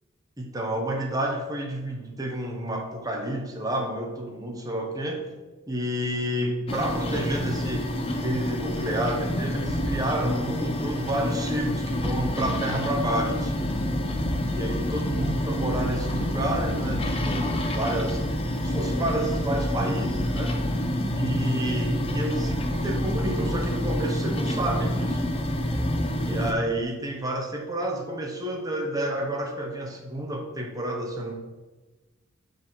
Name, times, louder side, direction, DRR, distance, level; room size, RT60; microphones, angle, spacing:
voice 1, 0.4-5.3 5.7-7.9 8.2-13.7 14.5-18.2 18.6-20.6 21.2-25.2 26.2-31.3, right 1 dB, 15° right, 1 dB, 1.0 m, -30 dB
sound 1, 6.7-26.5, equal, 25° left, 0.6 m, -27 dB
5.5 x 5.2 x 6.2 m, 1.2 s
head